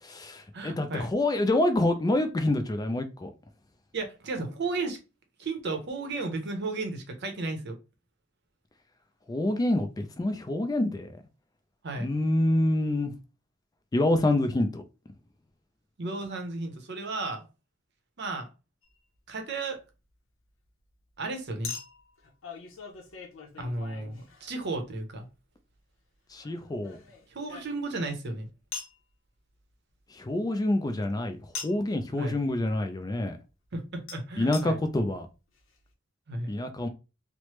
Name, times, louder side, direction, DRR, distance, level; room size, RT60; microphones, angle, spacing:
voice 1, 0.0-3.3 9.3-11.1 12.0-13.1 13.9-14.8 26.3-27.0 30.1-31.4 31.6-33.4 34.4-35.3 36.5-36.9, left 1 dB, 20° left, 0.3 m, -27 dB
voice 2, 0.5-1.1 3.9-5.0 5.4-7.8 11.8-12.1 16.0-17.4 18.2-18.5 19.3-19.8 21.2-21.7 23.6-25.3 27.3-28.5 32.2-32.4 33.7-34.8 36.3-36.5, right 3 dB, 60° right, 0.7 m, -34 dB
Chink clink, 18.8-19.0 21.6-24.8 26.4-28.1 28.7-29.0 31.5-31.9 34.1-34.2 34.5-34.6 35.3-35.4 35.6-35.7, left 5 dB, 75° left, 0.7 m, -42 dB
3.1 x 2.0 x 3.0 m
head